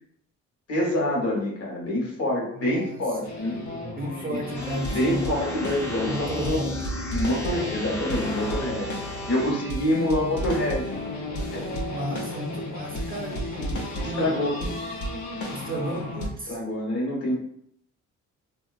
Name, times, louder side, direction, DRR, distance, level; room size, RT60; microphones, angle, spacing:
voice 1, 0.7-3.7 4.8-6.6 7.1-10.9 11.5-11.7 14.0-14.6 16.5-17.4, left 1 dB, 50° left, -2 dB, 1.1 m, -26 dB
voice 2, 2.5-3.6 3.9-5.3 6.1-6.9 9.8-10.4 11.9-14.8 15.5-16.6, right 1 dB, 30° right, 0 dB, 0.6 m, -34 dB
sound 1, 3.2-16.3, left 1 dB, 75° left, 0.7 m, -33 dB
sound 2, 4.6-9.5, equal, 10° left, 0.8 m, -36 dB
2.7 x 2.3 x 2.4 m, 0.67 s
cardioid pair, 90°, 30 cm